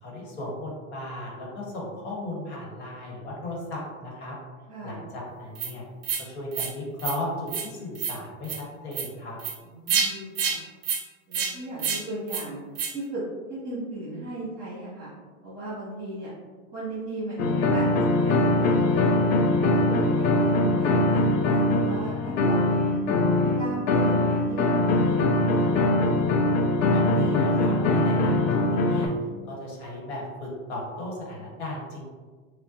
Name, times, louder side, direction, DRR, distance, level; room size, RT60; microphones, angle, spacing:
voice 1, 0.0-4.4 4.8-5.9 6.2-9.4 26.9-29.1 29.4-32.0, left 1 dB, 50° left, -2 dB, 1.2 m, -35 dB
voice 2, 4.7-5.0 9.6-10.6 11.3-12.6 12.9-13.2 13.5-15.1 15.4-16.3 16.7-19.2 19.6-23.0 23.4-24.7 25.0-25.7, right 2 dB, 20° right, -10 dB, 1.4 m, -36 dB
sound 1, 5.6-5.7 6.0-6.2 6.5-6.7 7.0-7.2 7.5-7.7 8.0-8.2 8.4-8.6 8.9-9.1 9.4-9.5 9.9-10.1 10.4-10.6 10.8-11.0 11.3-11.5 11.8-12.0 12.3-12.4 12.8-12.9, right 6 dB, 40° right, 0.5 m, -27 dB
sound 2, 17.4-29.1, left 2 dB, 65° left, 0.5 m, -22 dB
5.1 x 2.1 x 2.6 m, 1.4 s
supercardioid pair, 165°, 43 cm